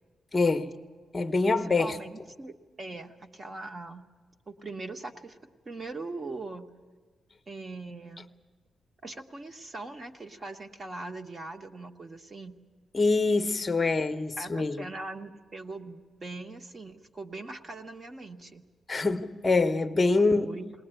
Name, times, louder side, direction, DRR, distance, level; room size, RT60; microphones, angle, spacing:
voice 1, 0.3-0.7 1.1-1.9 12.9-14.8 18.9-20.5, left 3 dB, 25° left, 0.9 m, -25 dB
voice 2, 1.5-4.1 4.5-5.4 5.6-6.7 7.5-8.3 9.0-12.6 14.4-18.6 20.2-20.7, right 2 dB, 30° right, 1.2 m, -41 dB
20.5 x 19.5 x 9.0 m
wide cardioid pair, 150°, 0 cm